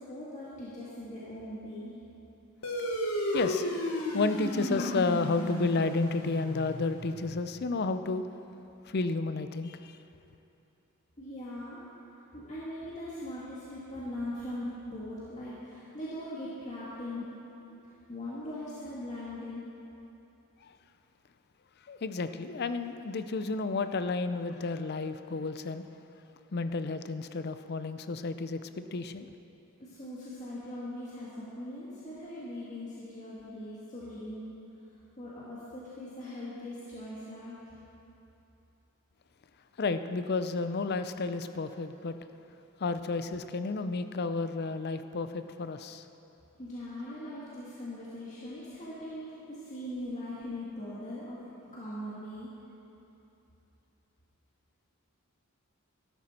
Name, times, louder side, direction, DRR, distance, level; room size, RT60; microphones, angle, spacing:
voice 1, 0.0-2.0 11.2-11.8 12.1-17.3 17.8-19.6 29.8-34.4 35.2-37.6 46.6-51.4 51.7-52.5, left 1 dB, 35° left, -9 dB, 1.9 m, -40 dB
sound 1, 2.6-7.5, equal, 80° left, 1.6 m, -34 dB
voice 2, 3.3-3.7 4.1-8.2 8.9-10.0 20.6-20.7 21.9-25.8 26.5-29.3 39.8-42.2 42.8-46.1, left 3 dB, 50° left, 10 dB, 0.5 m, -31 dB
13.5 x 12.5 x 4.3 m, 2.9 s
head